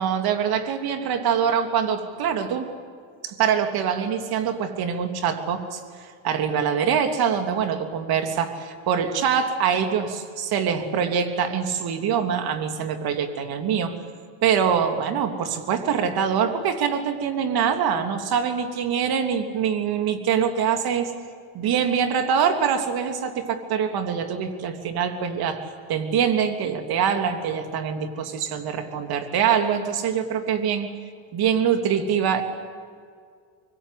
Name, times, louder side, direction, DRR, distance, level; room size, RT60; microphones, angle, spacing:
voice 1, 0.0-2.7 3.2-14.0 14.4-21.1 21.5-30.9 31.3-32.4, right 7 dB, 55° right, 6 dB, 3.2 m, -24 dB
24.5 x 24.0 x 8.4 m, 2.1 s
supercardioid pair, 100°, 43 cm